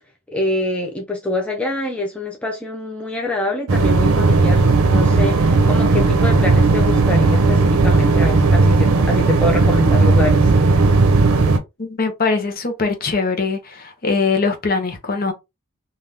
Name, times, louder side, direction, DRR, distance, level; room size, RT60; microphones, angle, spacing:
voice 1, 0.3-10.5, left 1 dB, 5° left, 0.4 m, -25 dB
sound 1, 3.7-11.6, right 3 dB, 85° right, 0.6 m, -15 dB
voice 2, 11.8-15.3, left 4 dB, 45° left, 0.7 m, -21 dB
3.4 x 2.4 x 2.7 m
head